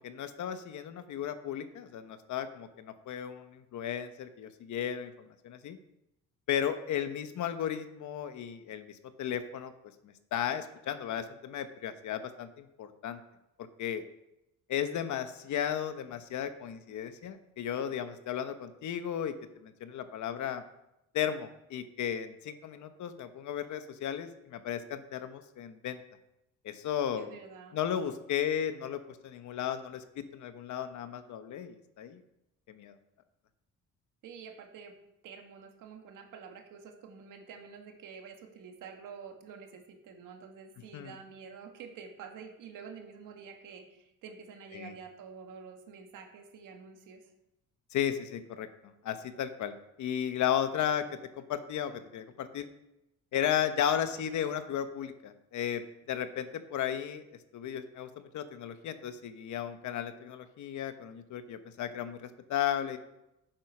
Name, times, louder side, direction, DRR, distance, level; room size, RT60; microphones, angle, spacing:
voice 1, 0.0-5.8 6.5-9.7 10.0-13.2 13.8-14.0 14.7-19.4 19.6-20.6 21.1-26.0 26.6-27.4 27.7-32.2 32.7-32.9 40.9-41.1 44.7-44.9 47.9-49.7 50.0-51.0 51.4-52.7 53.3-57.2 57.5-63.0, left 9 dB, 65° left, 10 dB, 1.1 m, -34 dB
voice 2, 27.1-27.8 34.2-34.9 35.2-47.2, right 6 dB, 85° right, 4 dB, 2.0 m, -48 dB
9.9 x 7.6 x 6.0 m, 0.88 s
cardioid pair, 130°, 31 cm